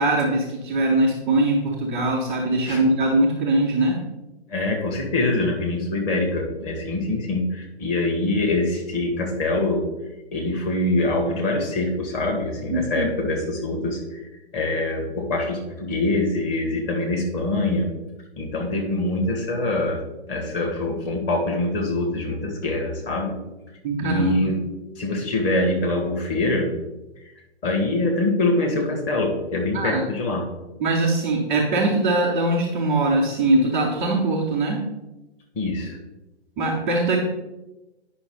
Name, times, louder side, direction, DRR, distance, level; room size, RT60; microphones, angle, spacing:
voice 1, 0.0-4.0 12.7-13.1 23.8-24.4 29.7-30.0 30.8-34.8 36.6-37.2, right 2 dB, 5° right, -7 dB, 0.4 m, -21 dB
voice 2, 4.5-9.8 10.3-14.2 14.5-17.9 18.4-20.0 20.3-23.3 24.0-24.6 25.0-26.7 27.6-30.5 35.5-36.0, left 2 dB, 25° left, 1 dB, 1.7 m, -24 dB
9.6 x 5.7 x 3.9 m, 1.0 s
figure-of-eight pair, 130°, 33 cm